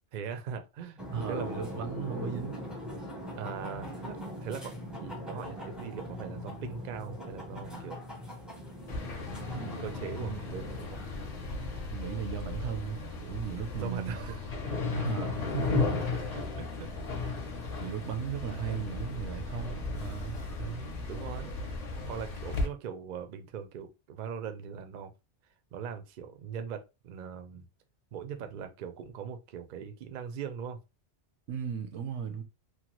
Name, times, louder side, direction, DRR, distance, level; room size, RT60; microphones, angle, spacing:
voice 1, 0.1-1.9 3.3-8.1 9.8-11.0 13.7-14.4 14.7-15.0 16.3-16.9 20.6-21.5 22.0-25.1 25.7-27.7 28.1-30.8, right 7 dB, 60° right, 0.6 m, -40 dB
sound 1, 1.0-11.9, left 1 dB, ahead, 0.6 m, -41 dB
voice 2, 1.1-2.6 9.5-9.9 10.2-10.4 11.9-14.2 14.9-16.4 17.8-20.4 31.5-32.4, right 8 dB, 80° right, 0.9 m, -36 dB
sound 2, 8.9-22.7, left 3 dB, 40° left, 0.7 m, -35 dB
3.0 x 2.2 x 2.9 m
omnidirectional pair, 1.2 m